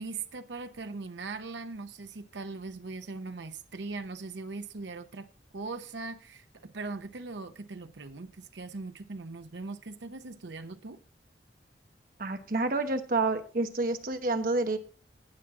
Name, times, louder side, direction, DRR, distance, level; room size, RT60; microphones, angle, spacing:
voice 1, 0.0-5.3 5.5-11.0, right 3 dB, 80° right, 0.8 m, -40 dB
voice 2, 12.2-14.8, right 3 dB, 50° right, 1.1 m, -29 dB
17.5 x 6.0 x 3.7 m
head